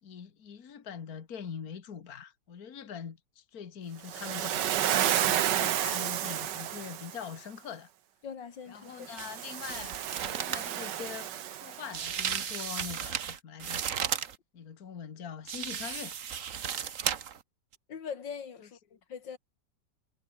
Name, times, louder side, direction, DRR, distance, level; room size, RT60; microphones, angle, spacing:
voice 1, 0.0-7.9 8.7-10.0 10.3-13.8 14.5-16.1 18.6-18.7, left 7 dB, 55° left, 2.1 m, -43 dB
Waves surf, 4.1-7.3 9.1-12.1, right 11 dB, 75° right, 1.6 m, -31 dB
voice 2, 8.2-9.1 17.9-19.4, left 6 dB, 85° left, 2.6 m, -42 dB
sound 1, 9.2-9.3 9.6-10.7 11.9-14.3 15.5-17.4 17.7-17.8, right 8 dB, 50° right, 1.4 m, -34 dB
omnidirectional pair, 1.9 m